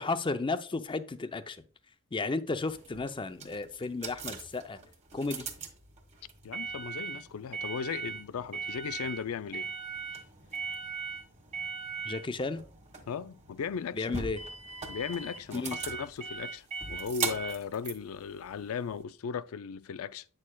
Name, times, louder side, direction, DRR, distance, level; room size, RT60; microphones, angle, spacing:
voice 1, 0.0-1.6 2.1-4.8 5.1-5.5 12.0-12.6 13.9-14.4 15.5-15.8, left 3 dB, 25° left, 0.5 m, -33 dB
sound 1, 2.6-19.0, right 5 dB, 35° right, 1.4 m, -39 dB
voice 2, 6.4-9.7 13.1-14.1 14.9-20.3, left 6 dB, 80° left, 0.4 m, -37 dB
8.6 x 6.5 x 2.2 m
head